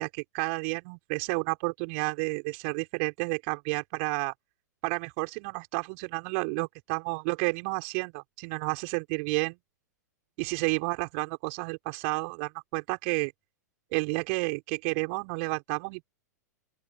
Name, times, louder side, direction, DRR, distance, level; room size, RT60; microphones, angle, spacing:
voice 1, 0.0-4.3 4.8-9.6 10.4-13.3 13.9-16.1, right 35 dB, 45° right, 6.0 m, -31 dB
open air
figure-of-eight pair, 95°, 10 cm